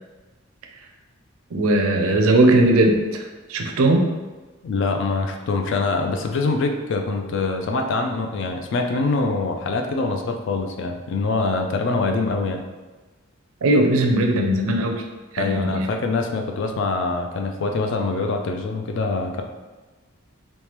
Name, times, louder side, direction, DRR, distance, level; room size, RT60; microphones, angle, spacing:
voice 1, 1.5-3.0 3.5-4.1 13.6-15.0 15.3-15.9, right 1 dB, 70° right, 3 dB, 0.4 m, -18 dB
voice 2, 4.6-12.6 15.4-19.4, left 3 dB, 55° left, 4 dB, 0.3 m, -24 dB
3.2 x 2.1 x 2.9 m, 1.2 s
head